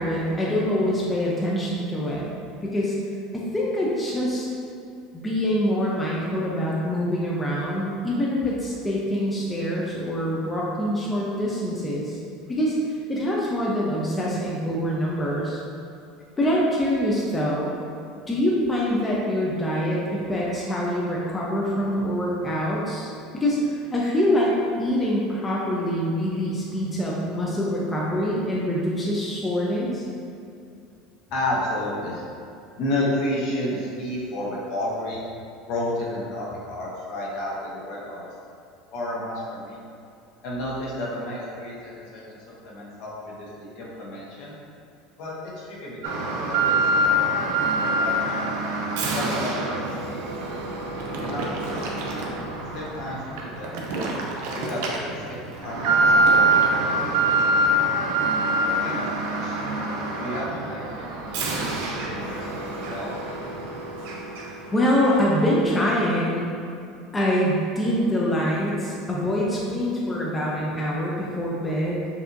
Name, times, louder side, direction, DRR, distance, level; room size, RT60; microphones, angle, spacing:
voice 1, 0.0-2.3 2.6-3.0 3.3-4.5 5.1-12.2 12.5-12.7 13.1-15.6 16.4-17.7 18.3-24.5 24.8-30.0 64.7-66.4 67.1-72.1, equal, 15° left, -5 dB, 0.6 m, -25 dB
voice 2, 31.3-32.2 32.8-35.2 35.7-38.2 38.9-39.8 40.4-44.6 45.2-46.2 46.5-48.5 49.0-50.6 51.2-51.9 52.7-54.0 54.5-57.6 58.8-59.6 60.2-63.4, left 1 dB, 65° left, -5 dB, 1.1 m, -32 dB
Alarm, 46.0-64.7 65.0-65.1 65.8-65.9, right 2 dB, 75° right, 0.6 m, -25 dB
5.6 x 2.7 x 2.6 m, 2.5 s
supercardioid pair, 130°, 0 cm